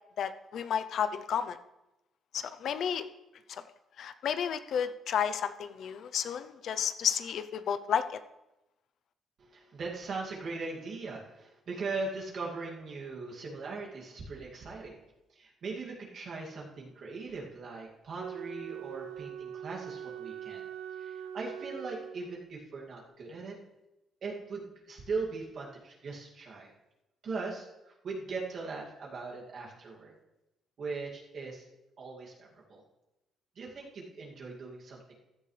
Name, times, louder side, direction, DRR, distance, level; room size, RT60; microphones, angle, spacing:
voice 1, 0.2-1.6 2.3-3.0 3.5-3.6 4.0-8.2, left 8 dB, 65° left, 11 dB, 0.6 m, -32 dB
voice 2, 9.4-15.0 15.3-20.6 20.9-23.6 24.2-26.7 27.2-30.1 30.8-31.6 32.0-32.8 33.6-35.2, right 3 dB, 55° right, -3 dB, 2.4 m, -40 dB
Wind instrument woodwind instrument, 18.1-22.6, right 9 dB, 75° right, 0.6 m, -42 dB
15.5 x 11.0 x 3.3 m, 0.95 s
cardioid pair, 120°, 0 cm